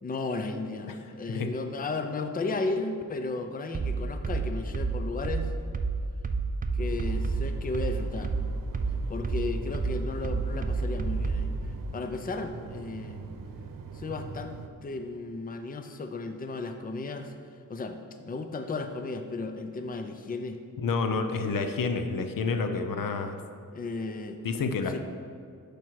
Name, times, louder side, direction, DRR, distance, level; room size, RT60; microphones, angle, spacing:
voice 1, 0.0-5.5 6.7-8.3 9.1-11.5 11.9-13.2 13.9-17.3 17.7-20.6 23.7-24.4 24.9-25.0, left 3 dB, 25° left, 6 dB, 0.5 m, -34 dB
sound 1, 3.7-11.6, right 4 dB, 25° right, 0.4 m, -29 dB
sound 2, 6.8-14.7, right 4 dB, 80° right, 0.8 m, -43 dB
voice 2, 20.8-23.4 24.4-25.0, left 4 dB, 85° left, 7 dB, 0.8 m, -29 dB
12.0 x 5.1 x 4.7 m, 2.3 s
wide cardioid pair, 130°, 33 cm